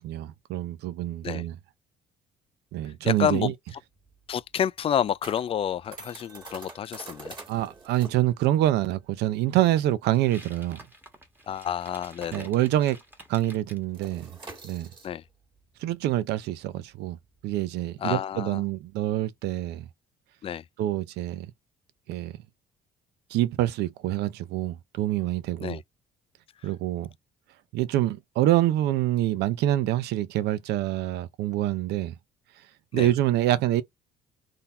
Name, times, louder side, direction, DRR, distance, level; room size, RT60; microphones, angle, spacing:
voice 1, 0.0-1.5 2.7-3.5 7.5-10.8 12.3-13.0 13.3-14.3 14.6-14.9 15.8-17.2 17.4-19.9 20.8-21.5 22.1-22.3 23.3-25.8 26.6-27.1 27.7-32.1 32.9-33.8, right 14 dB, 80° right, 0.6 m, -26 dB
voice 2, 3.0-3.5 4.3-7.3 11.5-12.5 15.0-15.2 18.0-18.6 20.4-20.6 25.6-25.8 32.9-33.1, left 9 dB, 35° left, 0.3 m, -29 dB
sound 1, 3.7-12.7 12.9-13.2 13.5-19.2, right 3 dB, 25° right, 1.8 m, -47 dB
sound 2, 10.1-13.8, right 1 dB, 10° right, 1.3 m, -49 dB
3.9 x 2.8 x 4.2 m
cardioid pair, 110°, 17 cm